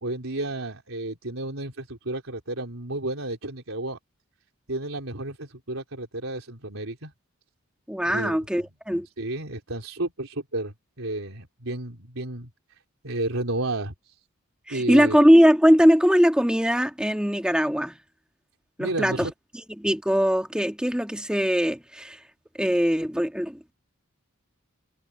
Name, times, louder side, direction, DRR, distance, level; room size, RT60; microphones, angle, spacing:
voice 1, 0.0-4.0 4.7-7.1 8.1-8.7 9.2-12.5 13.0-14.1 14.7-15.2 18.8-19.3, right 2 dB, 80° right, 3.9 m, -32 dB
voice 2, 7.9-9.1 14.7-17.9 18.8-19.3 19.8-22.2 22.6-23.7, equal, 5° right, 1.8 m, -21 dB
head